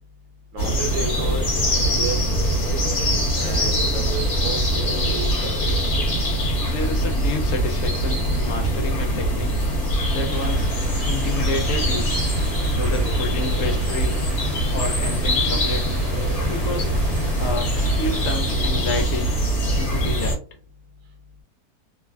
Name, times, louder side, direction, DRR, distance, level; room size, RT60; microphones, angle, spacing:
voice 1, 0.5-2.3 2.7-2.8 3.4-5.6 12.9-13.1, right 4 dB, 65° right, 1 dB, 0.9 m, -32 dB
sound 1, 0.6-20.4, equal, 50° left, 1.2 m, -22 dB
voice 2, 6.6-9.6 10.1-10.7 11.0-12.1 12.7-14.2 14.7-15.9 16.4-17.0 17.4-19.3 19.7-20.4, left 3 dB, 70° left, 4 dB, 0.8 m, -30 dB
sound 2, 10.3-18.4, equal, 25° right, 1.0 m, -38 dB
3.2 x 2.1 x 2.4 m, 0.37 s
omnidirectional pair, 1.8 m